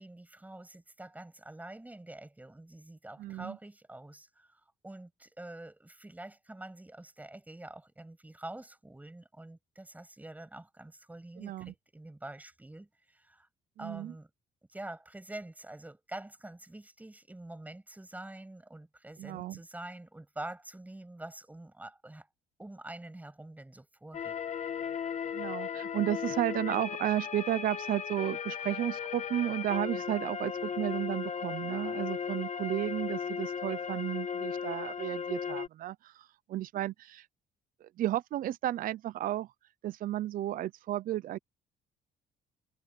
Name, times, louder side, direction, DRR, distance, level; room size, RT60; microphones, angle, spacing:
voice 1, 0.0-13.5 13.8-14.3 14.7-22.3 22.6-24.4, right 1 dB, 10° right, 7.0 m, -46 dB
voice 2, 3.2-3.6 11.4-11.7 13.8-14.1 19.2-19.6 25.3-37.3 37.8-39.5 39.8-41.4, right 13 dB, 55° right, 0.6 m, -33 dB
sound 1, 24.1-35.7, left 7 dB, 45° left, 1.7 m, -36 dB
cardioid pair, 110°, 17 cm